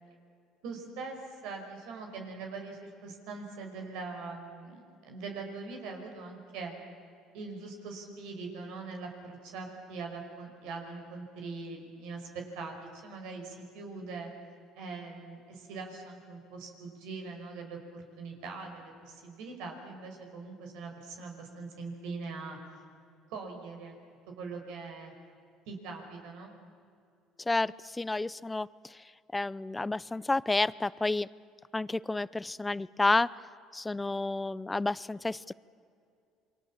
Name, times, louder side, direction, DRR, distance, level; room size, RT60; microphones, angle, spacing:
voice 1, 0.6-6.7 7.3-14.3 14.7-22.6 23.3-24.0 24.4-25.1 25.7-26.6, right 4 dB, 80° right, 3 dB, 5.6 m, -42 dB
voice 2, 27.5-29.0 29.3-31.3 31.7-33.3 33.7-35.5, left 2 dB, 15° left, 19 dB, 0.6 m, -30 dB
28.5 x 23.5 x 7.4 m, 2.4 s
cardioid pair, 105°, 0 cm